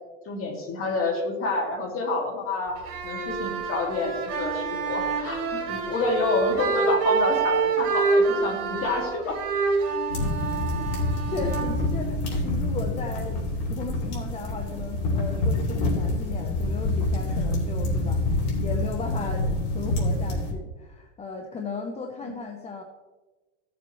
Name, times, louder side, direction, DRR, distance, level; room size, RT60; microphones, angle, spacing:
voice 1, 0.3-2.8 3.0-9.4 10.1-10.2, left 2 dB, 40° left, 1 dB, 2.3 m, -28 dB
sound 1, 2.8-12.5, right 4 dB, 45° right, 3.2 m, -27 dB
sound 2, 10.1-20.5, left 2 dB, 60° left, 3.2 m, -27 dB
voice 2, 11.3-22.8, left 4 dB, 20° left, 3 dB, 0.7 m, -36 dB
16.0 x 7.0 x 3.1 m, 1.3 s
supercardioid pair, 140°, 35 cm